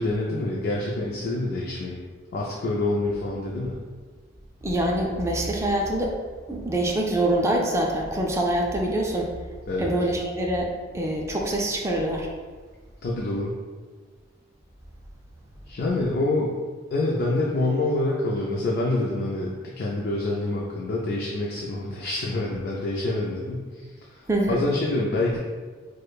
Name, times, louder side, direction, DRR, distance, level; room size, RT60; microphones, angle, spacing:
voice 1, 0.0-2.0 2.3-3.8 9.7-9.9 13.0-13.5 15.7-16.5 16.9-23.7 24.1-25.4, left 2 dB, 55° left, -3 dB, 0.4 m, -26 dB
voice 2, 4.6-6.1 6.5-9.3 9.8-12.3 24.3-24.6, right 1 dB, 15° right, 0 dB, 0.3 m, -25 dB
4.8 x 2.1 x 2.3 m, 1.5 s
head